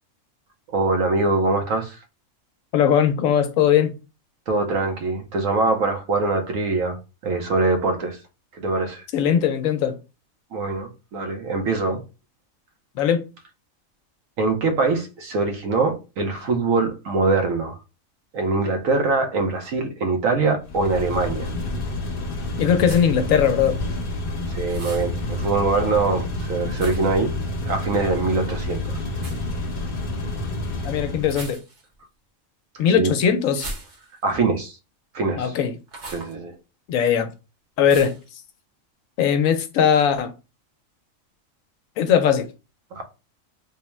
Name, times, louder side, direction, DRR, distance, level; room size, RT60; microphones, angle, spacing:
voice 1, 0.7-2.0 4.5-8.2 8.5-9.0 10.5-12.0 14.4-17.8 18.3-21.5 24.5-27.3 27.7-29.0 33.0-33.1 34.2-34.8 35.1-35.5 36.1-36.5 42.9-43.0, right 3 dB, 75° right, 1.2 m, -23 dB
voice 2, 2.7-3.9 9.1-10.0 13.0-13.2 22.6-23.8 30.8-31.6 32.8-33.7 35.4-35.7 36.9-37.3 37.8-38.1 39.2-40.3 42.0-42.5, left 8 dB, 80° left, 1.0 m, -19 dB
sound 1, 20.6-31.5, left 2 dB, 45° left, 1.0 m, -29 dB
sound 2, 22.8-23.3 24.7-25.1 26.8-27.2 29.1-29.4 31.2-31.9 33.5-34.3 35.9-36.3 37.9-38.3, right 2 dB, 60° right, 1.2 m, -38 dB
3.5 x 2.1 x 4.3 m
omnidirectional pair, 1.4 m